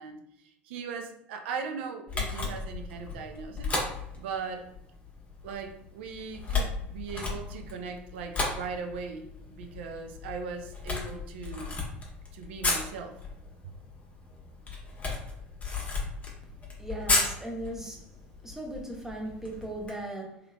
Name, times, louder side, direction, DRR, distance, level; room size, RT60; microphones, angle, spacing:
voice 1, 0.0-3.7 4.2-4.7 5.4-11.8 12.3-13.2, right 5 dB, 65° right, 4 dB, 0.5 m, -39 dB
Camera, 2.1-19.9, left 3 dB, 20° left, 1.1 m, -35 dB
voice 2, 16.8-18.0 18.4-20.4, right 1 dB, 5° right, 1 dB, 0.8 m, -37 dB
3.2 x 3.1 x 2.3 m, 0.75 s
figure-of-eight pair, 70°, 6 cm